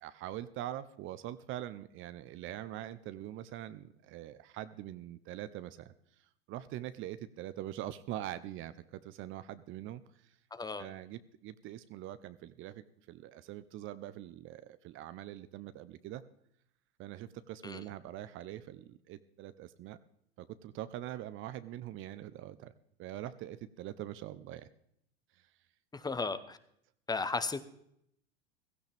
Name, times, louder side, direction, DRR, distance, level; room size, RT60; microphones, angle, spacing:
voice 1, 0.0-5.9 6.5-10.3 10.8-16.2 17.0-20.0 20.4-22.7 23.0-24.7, right 13 dB, 45° right, 14 dB, 0.8 m, -43 dB
voice 2, 10.5-10.8 17.6-17.8 25.9-26.6 27.1-27.6, left 4 dB, 15° left, 12 dB, 1.0 m, -35 dB
16.0 x 14.5 x 3.5 m, 0.73 s
hypercardioid pair, 90°, 29 cm